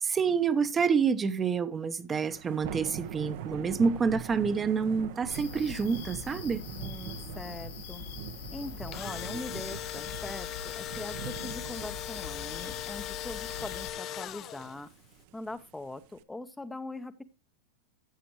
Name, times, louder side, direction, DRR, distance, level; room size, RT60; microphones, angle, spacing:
voice 1, 0.0-6.6, right 5 dB, 20° right, 0.9 m, -28 dB
Thunder / Rain, 2.2-16.2, right 10 dB, 60° right, 1.0 m, -43 dB
sound 1, 5.3-13.9, left 7 dB, 75° left, 2.1 m, -43 dB
voice 2, 6.8-8.0 8.5-14.9 15.3-17.2, left 2 dB, 10° left, 0.8 m, -42 dB
Engine / Drill, 8.7-14.9, left 13 dB, 40° left, 0.5 m, -39 dB
14.0 x 7.6 x 3.0 m
hypercardioid pair, 115°, 0 cm